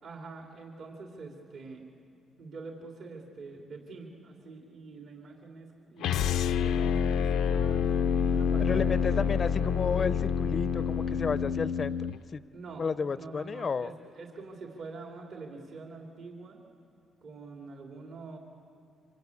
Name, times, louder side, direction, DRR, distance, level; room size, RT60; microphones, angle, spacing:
voice 1, 0.0-1.8 2.4-7.8 8.3-9.6 12.5-16.6 17.2-18.4, right 3 dB, 65° right, 0 dB, 3.1 m, -45 dB
sound 1, 6.0-12.2, left 7 dB, 90° left, 0.6 m, -27 dB
voice 2, 8.6-12.0 12.3-12.4 12.8-13.9, left 5 dB, 40° left, 15 dB, 0.6 m, -32 dB
27.0 x 25.5 x 8.6 m, 2.5 s
cardioid pair, 90°, 0 cm